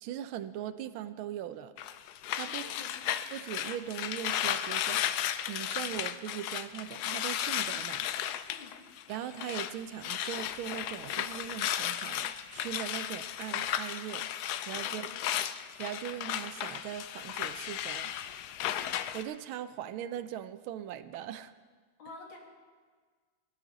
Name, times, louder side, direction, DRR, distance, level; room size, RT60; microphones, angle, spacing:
voice 1, 0.0-1.7 2.4-2.6 3.3-8.1 9.1-14.3 14.7-15.1 15.8-18.1 19.1-21.5, right 11 dB, 80° right, 13 dB, 1.4 m, -40 dB
sound 1, 1.8-9.7 10.0-19.2, left 11 dB, 80° left, 0.9 m, -35 dB
voice 2, 2.5-3.1 8.5-8.8 14.8-15.3 22.0-22.4, left 3 dB, 65° left, 0 dB, 2.9 m, -50 dB
18.0 x 13.0 x 4.0 m, 1.5 s
omnidirectional pair, 2.3 m